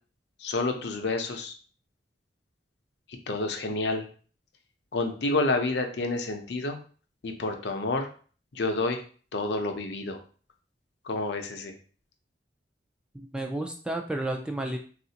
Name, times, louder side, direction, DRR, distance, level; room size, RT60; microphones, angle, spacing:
voice 1, 0.4-1.5 3.3-4.1 4.9-6.8 7.2-8.1 8.5-9.0 9.3-10.2 11.0-11.7, left 2 dB, 70° left, 4 dB, 0.6 m, -29 dB
voice 2, 13.1-14.8, right 1 dB, 5° right, 3 dB, 0.3 m, -32 dB
3.6 x 2.4 x 2.8 m, 0.41 s
head